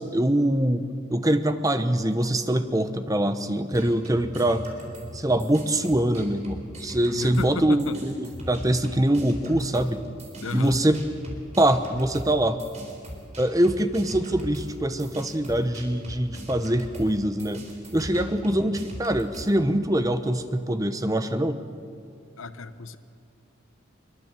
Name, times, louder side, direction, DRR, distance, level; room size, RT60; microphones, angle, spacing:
voice 1, 0.0-4.7 5.1-10.0 10.5-11.0 11.6-12.6 13.4-17.6 17.9-21.6, right 1 dB, 15° right, 9 dB, 0.9 m, -24 dB
sound 1, 3.7-7.5 7.8-19.5, equal, 35° right, 4.1 m, -40 dB
voice 2, 7.1-8.0 10.4-10.8 18.1-18.5 22.4-23.0, left 3 dB, 90° left, 12 dB, 1.0 m, -34 dB
22.5 x 22.5 x 7.6 m, 2.4 s
head